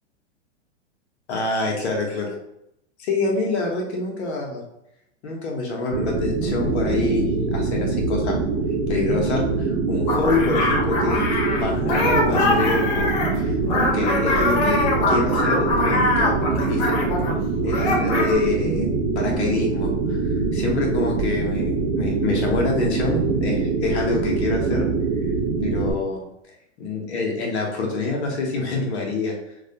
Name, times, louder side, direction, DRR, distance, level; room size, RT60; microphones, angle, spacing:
voice 1, 1.3-2.4 3.0-4.6 5.2-8.4 8.9-17.0 17.6-18.9 19.2-24.9 25.6-26.2 26.8-29.3, left 3 dB, 65° left, 0 dB, 0.8 m, -26 dB
sound 1, 5.9-25.9, right 4 dB, 50° right, 0.5 m, -24 dB
sound 2, 10.1-17.4 17.7-18.4, left 2 dB, 35° left, 0.4 m, -23 dB
2.3 x 2.1 x 2.7 m, 0.81 s
hypercardioid pair, 130°, 36 cm